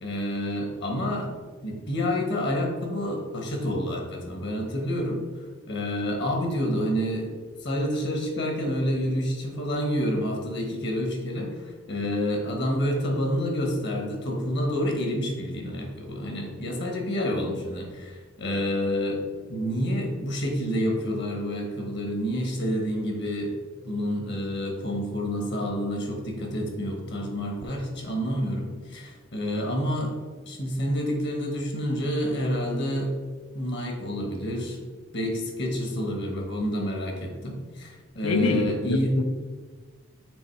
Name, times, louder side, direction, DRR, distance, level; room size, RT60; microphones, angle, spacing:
voice 1, 0.0-1.3 1.6-5.2 5.7-19.2 19.5-23.5 23.8-30.1 30.4-33.1 33.5-34.8 35.1-39.1, equal, 55° left, 1 dB, 1.3 m, -28 dB
voice 2, 38.2-39.2, left 3 dB, 85° left, 8 dB, 0.6 m, -25 dB
7.0 x 3.1 x 4.6 m, 1.5 s
head